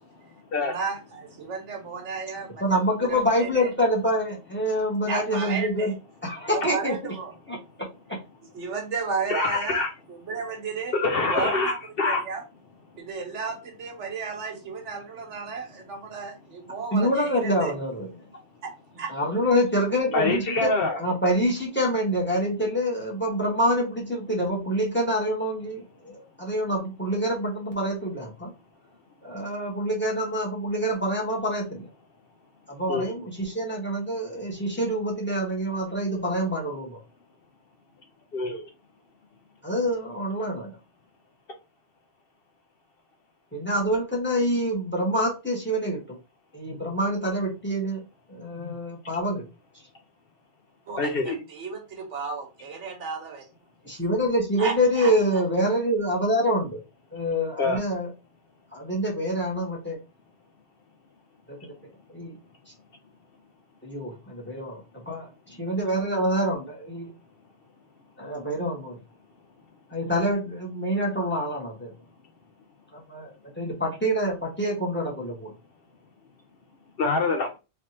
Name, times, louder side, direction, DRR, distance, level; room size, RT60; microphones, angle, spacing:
voice 1, 0.6-2.8 3.1-3.7 5.1-5.9 6.5-7.3 8.5-10.9 11.3-11.7 12.0-12.4 13.0-17.7 18.6-19.2 50.9-53.4 54.6-55.4, right 5 dB, 75° right, 1.3 m, -34 dB
voice 2, 2.6-6.0 6.2-7.0 7.5-7.6 8.1-8.2 16.9-18.1 19.1-20.7 21.0-28.5 29.2-31.9 32.7-37.0 39.6-40.8 43.5-46.2 46.5-48.0 48.3-49.4 53.8-56.8 57.1-58.1 58.7-60.0 61.5-61.6 62.1-62.4 63.8-67.1 68.2-69.0 69.9-71.9 72.9-75.5, equal, 10° left, 1.3 m, -26 dB
voice 3, 9.3-9.9 10.9-12.2 20.1-21.0 32.9-33.1 38.3-38.6 51.0-51.4 57.6-57.8 77.0-77.5, left 3 dB, 60° left, 0.8 m, -25 dB
3.4 x 3.0 x 2.8 m
omnidirectional pair, 1.2 m